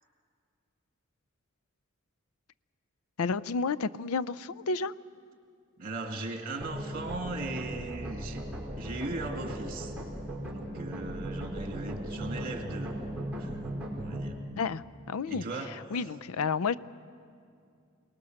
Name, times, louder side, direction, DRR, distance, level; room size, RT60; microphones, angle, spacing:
voice 1, 3.2-4.9 14.5-15.4 15.9-16.8, left 4 dB, 85° left, 17 dB, 0.5 m, -31 dB
voice 2, 5.8-8.4 8.8-10.0 10.5-12.9 13.4-13.7 14.0-14.4 15.3-15.8, right 2 dB, 45° right, 4 dB, 2.1 m, -38 dB
sound 1, 6.6-14.3, right 1 dB, 5° right, 4.6 m, -37 dB
28.5 x 19.0 x 6.5 m, 2.4 s
head